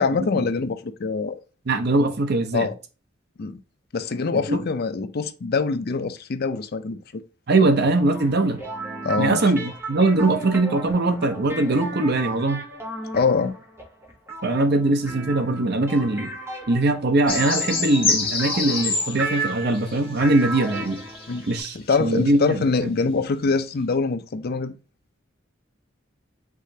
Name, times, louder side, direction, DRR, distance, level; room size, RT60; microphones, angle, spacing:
voice 1, 0.0-1.4 2.5-2.7 3.4-3.6 3.9-7.2 9.0-9.4 13.1-13.5 21.3-21.5 21.7-24.7, left 4 dB, 55° left, 0.5 m, -24 dB
voice 2, 1.7-2.7 4.3-4.6 7.5-8.6 9.2-12.6 14.4-16.3 16.7-21.0 21.5-22.9, right 2 dB, 60° right, 0.8 m, -21 dB
sound 1, 8.1-21.6, right 2 dB, 15° right, 1.2 m, -34 dB
sound 2, 17.3-21.6 22.1-22.2, left 4 dB, 30° left, 1.4 m, -27 dB
4.9 x 3.7 x 2.7 m
head